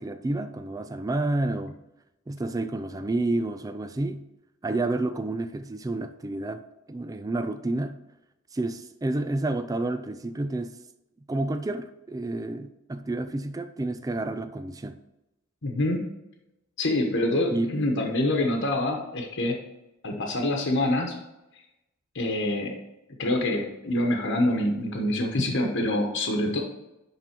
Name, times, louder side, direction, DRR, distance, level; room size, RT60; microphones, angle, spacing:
voice 1, 0.0-1.8 2.3-4.2 4.6-6.6 6.9-8.0 8.5-10.8 11.3-15.0 17.5-17.7, right 2 dB, 15° right, 0.3 m, -29 dB
voice 2, 15.6-16.0 16.8-19.6 20.0-21.1 22.1-22.8 23.2-26.6, left 1 dB, 60° left, 1.1 m, -26 dB
10.5 x 3.7 x 4.5 m
head